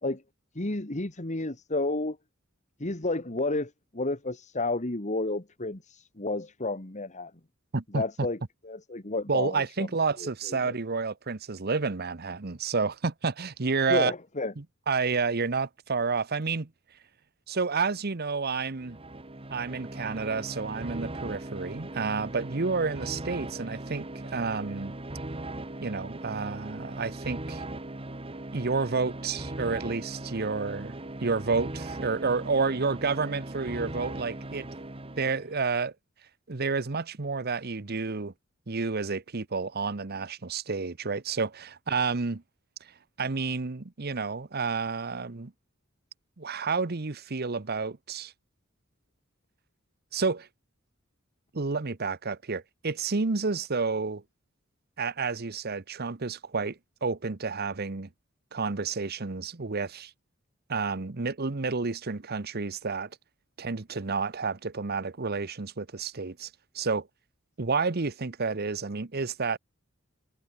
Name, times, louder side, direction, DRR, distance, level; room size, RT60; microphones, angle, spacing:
voice 1, 0.6-2.2 2.8-7.3 7.9-8.4 8.6-9.9 10.2-10.7 13.9-14.5, left 2 dB, 35° left, 1.9 m, -31 dB
voice 2, 7.7-8.0 9.3-14.1 14.6-16.7 17.5-19.0 19.5-24.9 25.8-27.6 28.5-34.7 35.2-35.9 36.5-38.3 38.7-42.4 42.8-42.9 43.2-45.5 46.4-48.3 50.1-50.5 51.5-54.2 55.0-58.1 58.5-60.1 60.7-63.1 63.6-66.5 66.7-67.1 67.6-69.6, right 4 dB, 50° right, 1.0 m, -30 dB
sound 1, 18.7-35.6, right 1 dB, 30° right, 1.6 m, -39 dB
head